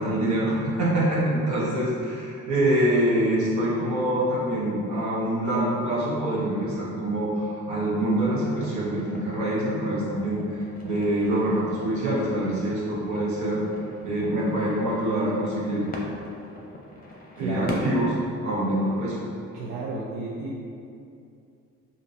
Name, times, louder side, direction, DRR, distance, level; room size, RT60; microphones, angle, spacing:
voice 1, 0.0-13.6 14.0-15.8 17.4-18.1 18.4-19.2, right 1 dB, 70° right, -6 dB, 1.3 m, -25 dB
sound 1, 8.4-18.0, left 1 dB, 30° left, 0.7 m, -41 dB
voice 2, 17.4-17.8 19.5-20.6, right 2 dB, 90° right, -6 dB, 0.6 m, -32 dB
5.1 x 2.7 x 2.7 m, 2.5 s
cardioid pair, 90°, 30 cm